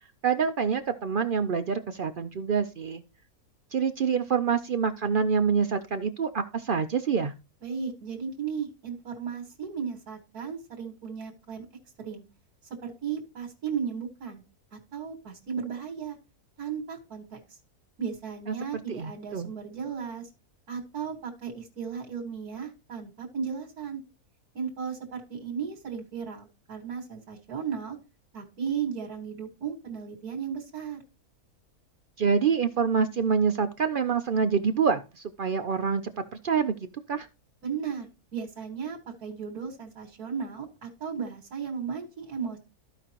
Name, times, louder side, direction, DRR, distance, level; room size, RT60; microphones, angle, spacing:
voice 1, 0.2-3.0 3.7-7.3 18.5-18.6 18.9-19.5 32.2-36.1 36.4-36.8 37.1-37.3, right 6 dB, 65° right, 8 dB, 0.5 m, -26 dB
voice 2, 7.6-11.7 12.0-12.2 12.8-14.4 14.7-16.2 16.6-17.4 18.0-20.3 20.7-24.0 24.5-28.0 28.3-31.0 37.6-42.6, right 6 dB, 85° right, 1 dB, 2.2 m, -35 dB
14.0 x 5.0 x 2.9 m, 0.29 s
omnidirectional pair, 1.6 m